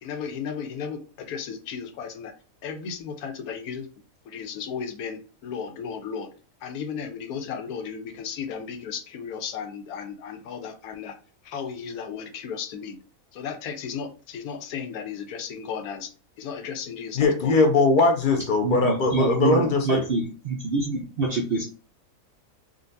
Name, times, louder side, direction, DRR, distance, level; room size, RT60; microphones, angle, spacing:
voice 1, 0.0-2.3 2.6-3.9 4.3-6.3 6.6-11.1 11.4-13.0 13.3-16.1 16.4-17.6, left 6 dB, 90° left, 1.1 m, -35 dB
voice 2, 17.1-20.1, left 3 dB, 55° left, 0.6 m, -20 dB
voice 3, 18.6-21.6, right 3 dB, 70° right, 0.5 m, -26 dB
3.8 x 2.4 x 2.6 m
omnidirectional pair, 1.5 m